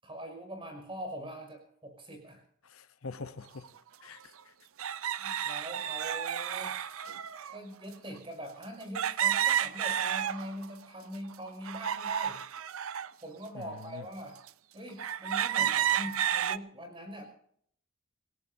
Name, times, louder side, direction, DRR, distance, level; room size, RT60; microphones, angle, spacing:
voice 1, 0.0-2.4 5.1-6.8 7.5-12.4 13.2-14.4 14.7-17.2, equal, 25° right, 5.7 m, -43 dB
voice 2, 2.6-3.7 4.0-4.5 13.5-14.1, left 4 dB, 85° left, 0.9 m, -45 dB
sound 1, 3.6-3.7 4.8-7.6 8.9-10.7 11.1-13.1 13.7-13.8 14.5-14.6 15.0-16.6, right 9 dB, 80° right, 0.6 m, -31 dB
27.0 x 17.5 x 2.7 m
head